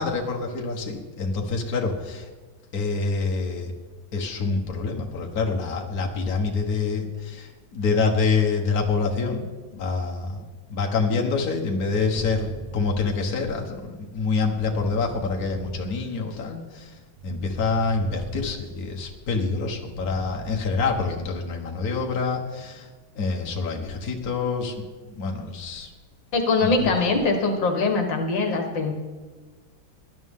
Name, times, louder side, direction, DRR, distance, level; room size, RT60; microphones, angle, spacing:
voice 1, 0.0-2.3 2.7-3.7 4.1-9.4 9.7-16.9 17.2-22.9 23.2-24.8 25.1-25.9 26.6-26.7, left 4 dB, 50° left, 0 dB, 1.8 m, -26 dB
sound 1, 11.8-13.2 14.5-15.8 17.2-18.5 19.8-21.1, right 5 dB, 70° right, 2.0 m, -39 dB
voice 2, 26.3-28.9, left 3 dB, 65° left, 4 dB, 2.2 m, -22 dB
19.5 x 11.5 x 3.7 m, 1.3 s
omnidirectional pair, 2.2 m